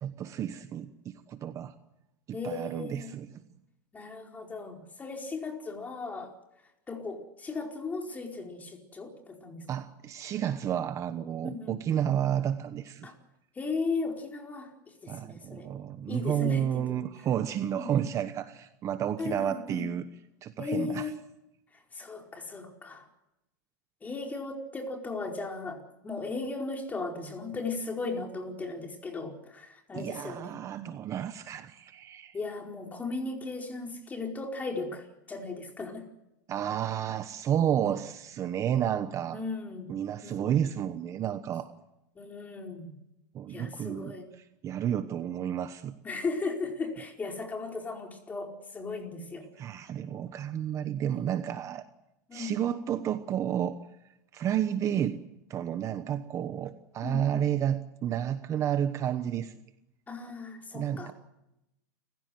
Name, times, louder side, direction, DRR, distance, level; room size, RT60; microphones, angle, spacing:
voice 1, 0.0-1.7 2.3-3.4 9.7-13.1 15.1-20.1 20.4-21.1 29.9-32.4 36.5-39.4 39.9-41.7 43.3-45.9 49.6-51.8 52.3-53.8 54.3-55.2 55.5-59.5 60.7-61.1, right 10 dB, 30° right, 11 dB, 1.1 m, -31 dB
voice 2, 2.3-3.1 3.9-6.3 6.9-9.6 11.4-11.8 13.0-13.1 13.5-15.7 16.1-17.0 17.8-18.0 19.2-19.9 20.6-21.1 21.9-23.1 24.0-30.5 32.3-36.0 39.3-39.9 40.2-40.5 42.1-42.9 43.5-44.3 46.0-49.5 51.0-51.1 52.3-52.5 57.0-57.4 60.1-61.1, left 3 dB, 15° left, 2 dB, 4.6 m, -36 dB
29.5 x 15.5 x 7.8 m, 0.89 s
supercardioid pair, 140°, 10 cm